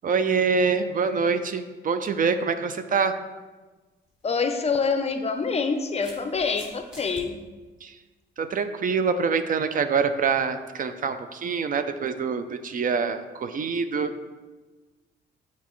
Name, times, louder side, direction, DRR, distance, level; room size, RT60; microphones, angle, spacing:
voice 1, 0.0-3.1 7.8-8.0 8.4-14.3, right 5 dB, 45° right, 9 dB, 0.4 m, -25 dB
sound 1, 4.1-4.2 5.3-7.2, left 1 dB, 5° right, 1.7 m, -46 dB
voice 2, 4.2-7.4, left 5 dB, 30° left, 7 dB, 0.5 m, -26 dB
8.1 x 4.2 x 3.1 m, 1.3 s
cardioid pair, 90°, 20 cm